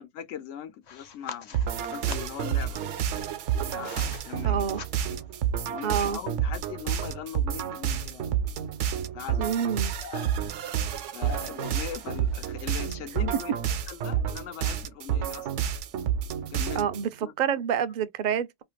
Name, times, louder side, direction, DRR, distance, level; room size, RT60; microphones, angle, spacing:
voice 1, 0.0-2.8 3.7-4.7 5.6-8.3 9.1-9.5 10.0-10.4 11.1-15.5 16.5-16.9 17.2-17.6, left 9 dB, 85° left, 1.0 m, -40 dB
sound 1, 0.8-2.4 3.2-4.2 4.6-5.3, left 7 dB, 55° left, 0.4 m, -43 dB
sound 2, 1.5-17.1, right 9 dB, 80° right, 0.9 m, -30 dB
voice 2, 4.4-4.8 5.8-6.2 9.4-9.9 16.8-17.1 17.4-18.6, right 8 dB, 60° right, 0.5 m, -27 dB
2.7 x 2.4 x 3.1 m
omnidirectional pair, 1.2 m